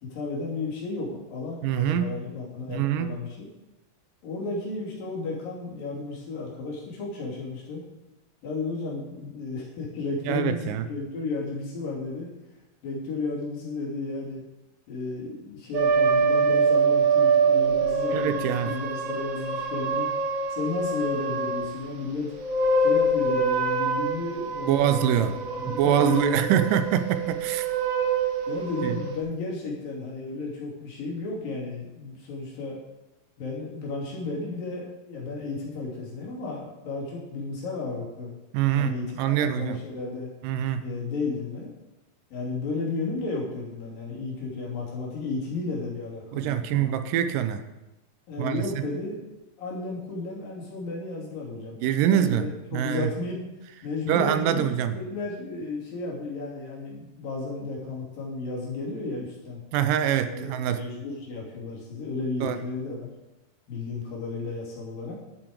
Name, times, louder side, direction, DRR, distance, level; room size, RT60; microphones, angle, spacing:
voice 1, 0.0-3.5 4.2-7.8 8.4-12.3 12.8-14.4 14.9-20.1 20.5-22.3 22.8-26.7 27.5-27.6 28.5-32.8 33.4-38.3 38.7-40.3 40.8-41.7 42.3-46.9 48.3-49.2 49.6-53.4 53.8-59.6 60.3-63.1 63.7-65.2, left 3 dB, 75° left, -4 dB, 4.6 m, -33 dB
voice 2, 1.6-2.1 2.7-3.1 10.3-10.9 18.1-18.8 24.7-25.4 25.7-27.7 28.8-29.0 38.5-39.8 40.4-40.9 46.3-47.6 48.4-48.9 51.8-53.1 54.1-55.0 59.7-60.8 62.4-62.6, right 10 dB, 85° right, 11 dB, 2.2 m, -25 dB
sound 1, 15.7-21.8 22.3-29.2, right 4 dB, 55° right, 2.0 m, -25 dB
11.0 x 8.7 x 5.1 m, 1.0 s
omnidirectional pair, 4.0 m